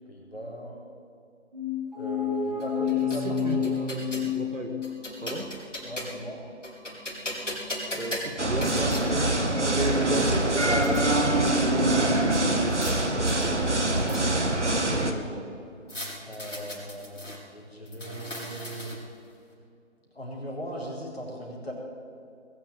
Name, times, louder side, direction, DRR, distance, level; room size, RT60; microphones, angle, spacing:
voice 1, 0.1-0.8 2.0-3.2 5.8-6.4 16.2-17.1 17.5-18.9 20.1-21.7, equal, 50° left, -3 dB, 4.9 m, -38 dB
sound 1, 1.5-5.3, left 6 dB, 35° right, 2.4 m, -29 dB
sound 2, 2.6-4.3 4.8-6.3 6.6-9.1 9.8-9.9 10.2-11.0 12.3-13.0 13.3-14.5 15.9-17.4 17.9-19.2, left 1 dB, 75° left, 5.3 m, -38 dB
voice 2, 2.9-5.0 5.2-5.6 7.9-9.5 10.0-12.0 12.3-13.8 14.6-15.6, right 1 dB, 90° right, 5 dB, 2.2 m, -36 dB
sound 3, 8.4-15.1, right 2 dB, 65° right, 1.8 m, -24 dB
20.5 x 7.7 x 8.7 m, 2.4 s
figure-of-eight pair, 170°, 38 cm